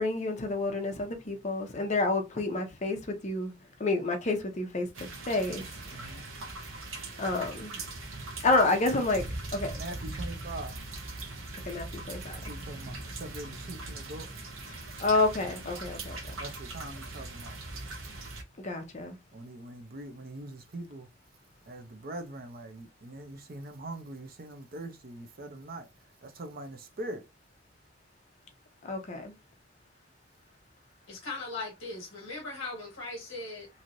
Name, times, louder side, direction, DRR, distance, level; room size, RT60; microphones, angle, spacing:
voice 1, 0.0-3.5 3.8-5.6 5.9-6.1 7.2-7.8 8.4-9.2 9.5-9.7 11.7-12.9 14.7-16.3 18.6-19.2 28.8-29.3, left 2 dB, 35° left, 0.6 m, -29 dB
sound 1, 4.9-18.4, right 2 dB, 75° right, 0.8 m, -41 dB
voice 2, 5.9-6.3 9.8-10.8 12.3-14.3 16.4-17.6 19.3-21.1 21.7-25.9 26.2-27.2, right 1 dB, 45° right, 0.6 m, -42 dB
voice 3, 31.1-33.7, left 3 dB, 60° left, 1.2 m, -39 dB
3.0 x 2.7 x 2.6 m
head